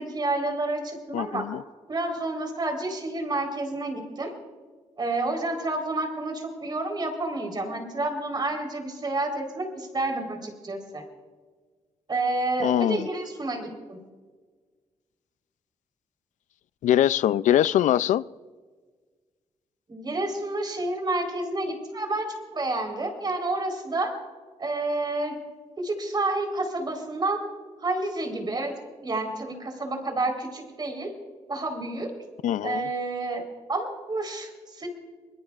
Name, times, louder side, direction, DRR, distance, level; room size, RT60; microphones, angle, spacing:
voice 1, 0.0-1.5 1.9-4.3 5.0-11.0 12.1-14.0 19.9-24.2 24.6-25.4 25.8-27.4 27.8-28.7 29.0-31.1 31.5-32.1 32.6-33.4 33.7-34.9, right 2 dB, 35° right, 3.9 m, -29 dB
voice 2, 1.1-1.6 12.6-13.1 16.8-18.2 32.4-32.9, left 11 dB, 85° left, 0.4 m, -22 dB
25.5 x 21.0 x 2.4 m
cardioid pair, 95°, 12 cm